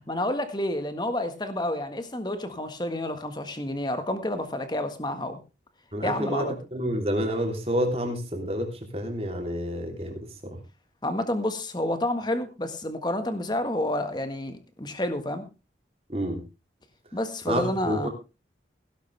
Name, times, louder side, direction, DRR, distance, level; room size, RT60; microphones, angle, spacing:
voice 1, 0.1-5.4 6.0-6.6 11.0-15.4 17.1-18.1, left 1 dB, 25° left, 9 dB, 1.6 m, -29 dB
voice 2, 5.9-8.7 8.9-10.6 16.1-16.4 17.5-18.1, equal, 35° right, 3 dB, 3.3 m, -29 dB
16.5 x 11.5 x 3.4 m, 0.29 s
head